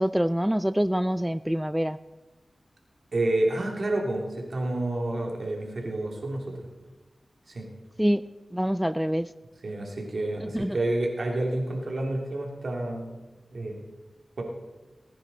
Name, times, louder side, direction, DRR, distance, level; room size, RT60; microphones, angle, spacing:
voice 1, 0.0-2.0 8.0-8.2 8.5-9.3 10.5-10.8, equal, 5° right, 14 dB, 0.4 m, -25 dB
voice 2, 3.1-6.7 7.5-7.7 9.6-13.2 13.5-13.8 14.4-14.5, right 1 dB, 70° right, 1 dB, 2.8 m, -29 dB
19.0 x 9.9 x 4.1 m, 1.2 s
cardioid pair, 50°, 0 cm